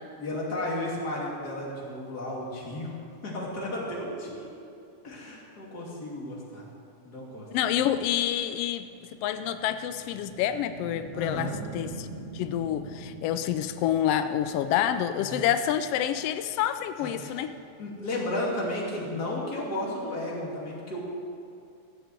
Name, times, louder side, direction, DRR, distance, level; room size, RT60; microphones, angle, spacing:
voice 1, 0.2-2.9 3.2-4.7 5.0-6.7 7.0-7.5 7.7-7.8 11.1-11.6 15.2-15.4 17.0-17.4 17.8-21.0, left 1 dB, 35° left, -4 dB, 3.0 m, -33 dB
voice 2, 7.5-8.9 9.2-12.1 12.3-17.5, left 10 dB, 90° left, 10 dB, 1.3 m, -28 dB
sound 1, 8.1-18.7, right 2 dB, 40° right, 0.9 m, -45 dB
15.5 x 7.4 x 8.1 m, 2.5 s
omnidirectional pair, 3.3 m